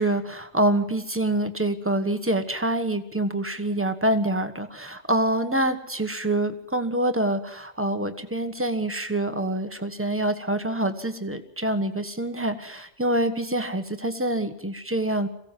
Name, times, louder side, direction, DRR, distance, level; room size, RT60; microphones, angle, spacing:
voice 1, 0.0-15.3, right 1 dB, 10° right, 8 dB, 1.3 m, -26 dB
23.5 x 16.5 x 7.6 m, 0.78 s
omnidirectional pair, 1.3 m